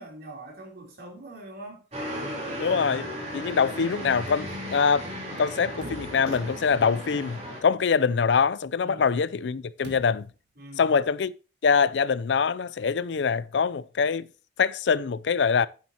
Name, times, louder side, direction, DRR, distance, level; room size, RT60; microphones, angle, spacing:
voice 1, 0.0-1.8 8.8-9.2 10.6-11.0, right 1 dB, 60° right, 3.5 m, -43 dB
sound 1, 1.9-7.6, equal, 40° right, 3.6 m, -35 dB
voice 2, 2.6-3.1 3.3-5.1 5.4-10.3 10.8-11.3 11.6-14.3 14.6-15.7, left 5 dB, 80° left, 0.5 m, -24 dB
sound 2, 5.8-7.3 9.8-10.4, right 1 dB, 75° right, 1.6 m, -45 dB
9.8 x 9.0 x 2.9 m
head